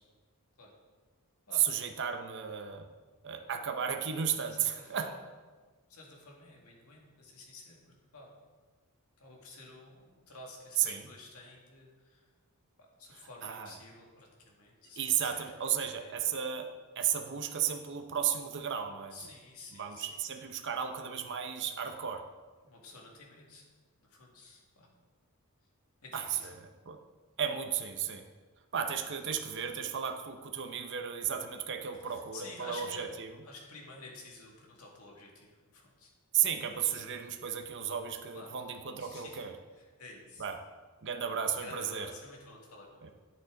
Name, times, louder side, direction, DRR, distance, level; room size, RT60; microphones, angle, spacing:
voice 1, 1.6-2.9 3.2-5.1 10.8-11.0 13.4-13.7 15.0-16.7 17.0-19.2 19.7-22.2 26.1-26.5 26.9-27.0 27.4-28.2 28.7-33.3 36.3-39.5 40.4-40.6 41.0-42.1 43.0-43.1, right 8 dB, 55° right, 5 dB, 0.7 m, -34 dB
voice 2, 4.6-5.2 5.9-7.8 8.1-8.3 9.2-12.2 13.0-15.5 15.8-16.1 19.1-20.2 22.6-23.7 24.0-24.9 26.0-26.5 28.9-29.3 31.9-33.1 33.4-36.1 38.3-38.5 39.0-39.5 39.8-40.4 41.6-43.1, left 2 dB, 75° left, -1 dB, 2.0 m, -51 dB
10.0 x 8.5 x 3.8 m, 1.4 s
head